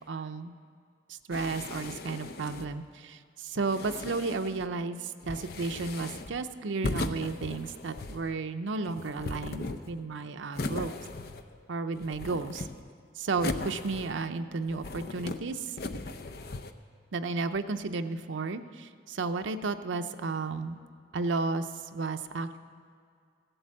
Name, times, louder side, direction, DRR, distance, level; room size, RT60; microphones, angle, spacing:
voice 1, 0.1-0.6 1.1-10.9 11.7-12.7 13.1-15.8 17.1-20.8 21.1-22.6, right 3 dB, 90° right, 8 dB, 0.6 m, -33 dB
sound 1, 1.3-2.8 3.6-4.7 5.2-6.4 6.8-8.3 8.9-10.1 10.5-11.6 11.9-12.9 13.4-14.3 14.7-15.4 15.8-16.7, left 2 dB, 55° left, 0.6 m, -38 dB
15.5 x 7.9 x 7.5 m, 2.3 s
head